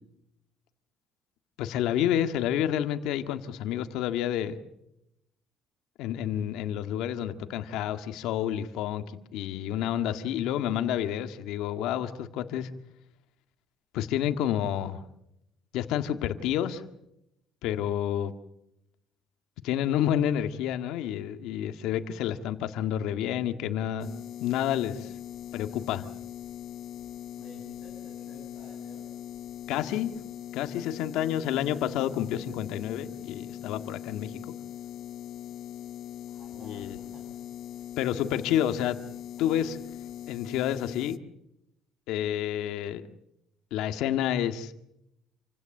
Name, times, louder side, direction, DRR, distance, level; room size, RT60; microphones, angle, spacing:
voice 1, 1.6-4.6 6.0-9.0 9.3-12.7 13.9-15.0 15.7-16.8 17.6-18.3 19.6-24.1 24.4-25.1 25.5-26.0 29.7-30.1 30.5-34.3 36.6-37.0 38.0-39.0 39.4-39.8 40.3-41.2 42.1-43.0 43.7-44.7, left 11 dB, 80° left, 8 dB, 1.7 m, -29 dB
sound 1, 24.0-41.2, left 11 dB, 60° left, 0.8 m, -41 dB
voice 2, 27.4-29.1 36.3-37.4 39.4-39.8, right 1 dB, 40° right, 2 dB, 6.6 m, -52 dB
28.5 x 16.0 x 7.8 m, 0.85 s
cardioid pair, 120°, 0 cm